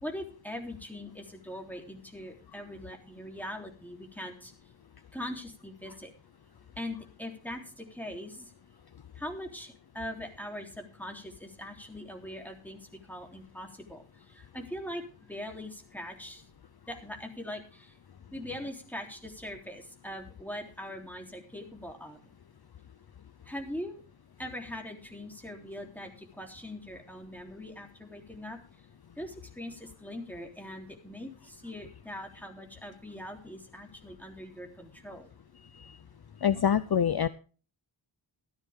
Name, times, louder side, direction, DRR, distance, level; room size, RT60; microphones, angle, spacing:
voice 1, 0.0-4.5 5.1-6.1 6.8-8.5 9.1-12.8 13.1-15.0 15.3-16.4 16.9-17.9 18.3-22.3 23.4-24.0 24.4-28.6 29.2-35.3, left 1 dB, 5° left, 2 dB, 3.4 m, -41 dB
voice 2, 36.4-37.3, left 8 dB, 50° left, 15 dB, 0.6 m, -26 dB
14.5 x 12.0 x 3.6 m, 0.37 s
wide cardioid pair, 60°, 48 cm